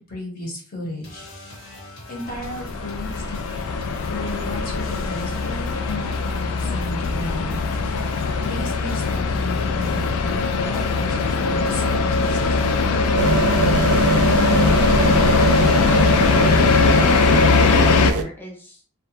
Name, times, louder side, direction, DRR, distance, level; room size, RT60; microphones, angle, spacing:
voice 1, 0.1-1.2 2.1-3.4 4.1-7.6 8.4-12.4, left 1 dB, 40° left, -2 dB, 0.9 m, -33 dB
sound 1, 1.0-15.8, left 2 dB, 65° left, 1.0 m, -40 dB
sound 2, 2.3-18.1, left 4 dB, 85° left, 0.3 m, -20 dB
sound 3, 13.2-18.2, right 4 dB, 90° right, 0.4 m, -22 dB
voice 2, 16.9-18.8, equal, 10° left, -2 dB, 0.5 m, -35 dB
2.3 x 2.2 x 2.9 m, 0.42 s
head